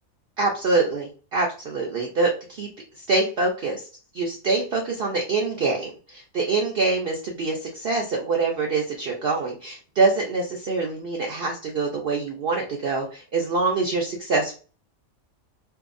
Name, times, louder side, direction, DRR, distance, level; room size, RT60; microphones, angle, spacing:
voice 1, 0.4-2.7 3.1-3.9 4.1-14.5, right 3 dB, 65° right, 0 dB, 0.6 m, -25 dB
2.7 x 2.3 x 2.5 m, 0.36 s
omnidirectional pair, 1.4 m